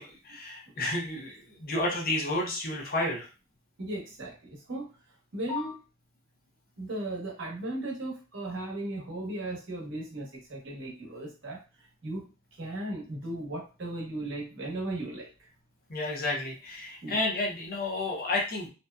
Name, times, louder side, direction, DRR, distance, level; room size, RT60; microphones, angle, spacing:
voice 1, 0.0-3.3 15.9-18.7, left 2 dB, 45° left, -1 dB, 0.7 m, -31 dB
voice 2, 3.8-4.9 5.3-5.8 6.8-11.6 12.0-12.3 12.6-15.5 17.0-17.2, right 1 dB, 60° right, -2 dB, 0.9 m, -36 dB
2.6 x 2.1 x 2.2 m, 0.32 s
head